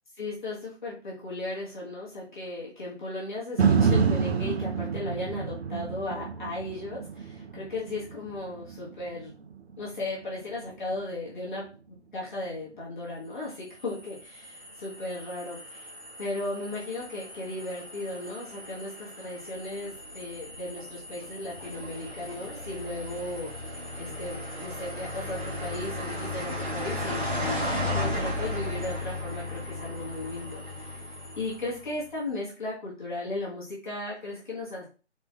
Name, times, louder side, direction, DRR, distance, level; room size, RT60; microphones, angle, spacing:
voice 1, 0.2-9.3 9.8-11.7 12.1-15.9 16.2-31.0 31.4-34.8, left 2 dB, 40° left, -6 dB, 1.6 m, -36 dB
sound 1, 3.6-11.7 12.2-12.3, right 6 dB, 60° right, 0.5 m, -29 dB
sound 2, 13.5-32.0, left 1 dB, 10° right, 1.1 m, -36 dB
4.2 x 3.6 x 2.5 m, 0.35 s
figure-of-eight pair, 155°, 35 cm